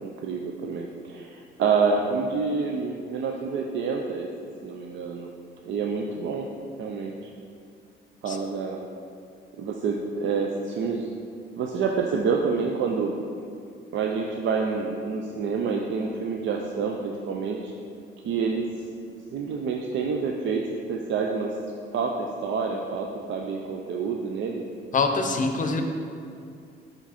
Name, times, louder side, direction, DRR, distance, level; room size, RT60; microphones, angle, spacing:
voice 1, 0.0-4.3 4.6-5.3 5.7-6.5 6.8-7.3 8.2-8.8 9.6-11.1 11.6-13.1 13.9-17.7 18.2-18.7 19.3-21.5 21.9-22.1 22.4-24.6, right 5 dB, 70° right, 1 dB, 0.5 m, -28 dB
voice 2, 24.9-25.8, left 4 dB, 40° left, 4 dB, 0.7 m, -24 dB
5.9 x 5.2 x 4.2 m, 2.4 s
cardioid pair, 90°, 20 cm